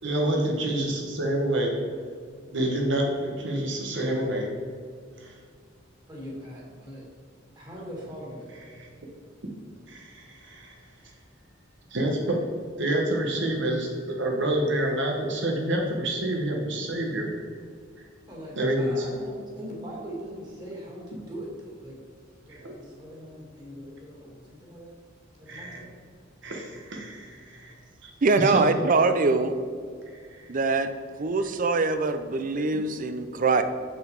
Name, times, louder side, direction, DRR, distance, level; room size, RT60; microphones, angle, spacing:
voice 1, 0.0-1.7 2.5-4.5 5.2-5.3 8.7-8.9 9.9-10.7 11.9-12.4 12.8-17.3 18.6-19.1 22.5-22.8 25.5-25.8 26.4-27.7 28.0-28.1 28.4-28.7 30.3-30.5, right 1 dB, 65° right, 1 dB, 1.1 m, -28 dB
voice 2, 6.1-7.1 7.6-8.5 18.3-22.0 22.4-25.0 25.4-25.9, equal, 20° right, -4 dB, 2.3 m, -41 dB
voice 3, 28.2-29.5 30.5-30.9 31.2-33.6, right 3 dB, 45° right, 10 dB, 0.5 m, -23 dB
7.1 x 6.5 x 4.7 m, 2.1 s
head